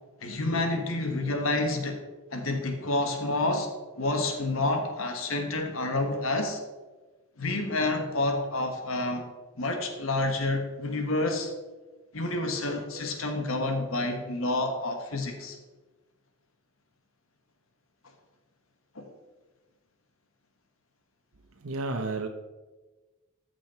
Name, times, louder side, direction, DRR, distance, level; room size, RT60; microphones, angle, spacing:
voice 1, 0.2-2.0 2.3-3.7 4.0-6.6 7.4-9.3 9.6-11.5 12.1-15.6 18.9-19.1, left 2 dB, 75° left, 5 dB, 1.5 m, -29 dB
voice 2, 21.6-22.3, right 3 dB, 75° right, 4 dB, 0.8 m, -31 dB
14.0 x 6.3 x 4.3 m, 1.2 s
head